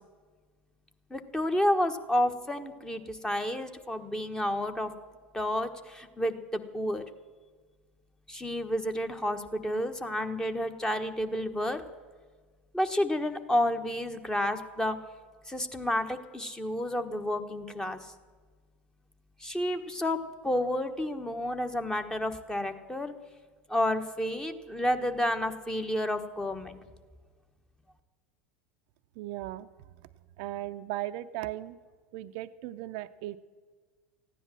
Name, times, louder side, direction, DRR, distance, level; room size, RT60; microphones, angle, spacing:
voice 1, 1.1-4.9 5.3-7.0 8.3-11.8 12.7-15.0 15.5-18.1 19.4-23.1 23.7-26.8, left 1 dB, 10° left, 7 dB, 1.3 m, -30 dB
voice 2, 29.2-29.7 30.4-31.8 32.1-33.4, right 15 dB, 60° right, 10 dB, 0.6 m, -37 dB
15.0 x 10.0 x 7.5 m, 1.5 s
hypercardioid pair, 85°, 6 cm